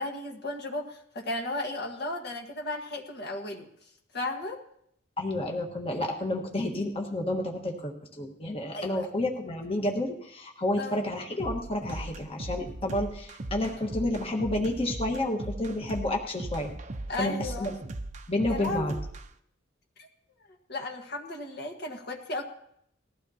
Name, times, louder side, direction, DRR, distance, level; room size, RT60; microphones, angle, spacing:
voice 1, 0.0-3.7 4.1-4.6 8.7-9.1 10.8-11.0 17.1-17.7 18.5-19.0 20.0-20.1 20.7-22.4, left 2 dB, 55° left, 2 dB, 1.5 m, -34 dB
voice 2, 5.2-16.7 17.2-17.7 18.3-18.9, left 1 dB, 30° left, 1 dB, 1.5 m, -30 dB
sound 1, 11.4-19.3, right 2 dB, 35° right, 0.7 m, -38 dB
20.0 x 15.0 x 2.9 m, 0.72 s
head